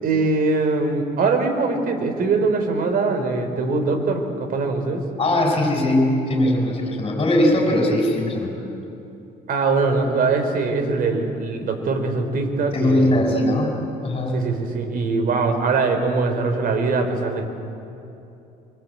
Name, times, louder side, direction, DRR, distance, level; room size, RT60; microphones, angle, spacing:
voice 1, 0.0-5.0 9.5-13.2 14.3-17.5, right 3 dB, 55° right, 6 dB, 4.1 m, -22 dB
voice 2, 5.2-8.6 12.7-13.7 14.0-14.4, left 1 dB, 30° left, 1 dB, 6.1 m, -20 dB
24.5 x 24.5 x 8.7 m, 2.8 s
cardioid pair, 110°, 17 cm